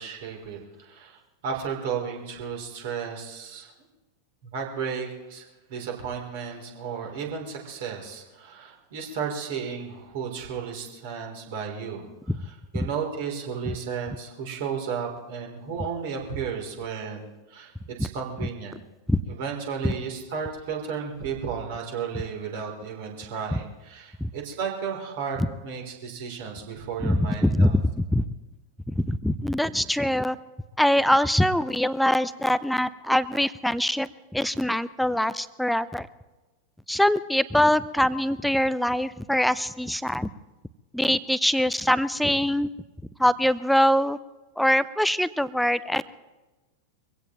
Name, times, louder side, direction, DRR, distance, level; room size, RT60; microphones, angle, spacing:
voice 1, 0.0-3.7 4.4-12.0 12.4-17.2 17.5-17.7 18.0-18.8 19.3-27.8, right 6 dB, 50° right, 1 dB, 3.2 m, -33 dB
voice 2, 27.0-27.8 28.1-28.2 29.0-30.4 30.8-36.1 36.9-40.3 40.9-42.7 43.2-44.2 44.6-46.0, equal, ahead, 16 dB, 0.5 m, -23 dB
24.0 x 16.5 x 3.0 m, 1.1 s
figure-of-eight pair, 90°, 0 cm